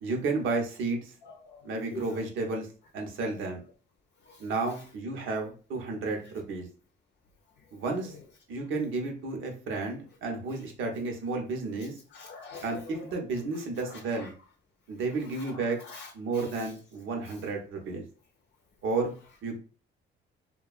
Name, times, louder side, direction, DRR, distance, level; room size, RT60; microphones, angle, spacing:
voice 1, 0.0-1.1 1.6-2.7 2.9-3.6 4.4-6.7 7.7-8.1 8.5-12.0 12.6-14.3 14.9-15.8 16.1-18.0 18.8-19.1 19.4-19.6, right 3 dB, 80° right, 2 dB, 0.8 m, -32 dB
voice 2, 1.2-2.2 4.2-4.5 8.1-8.2 12.1-13.0 13.5-14.3 15.3-16.7, left 4 dB, 60° left, 3 dB, 0.5 m, -47 dB
2.8 x 2.2 x 2.3 m, 0.37 s
cardioid pair, 90°, 20 cm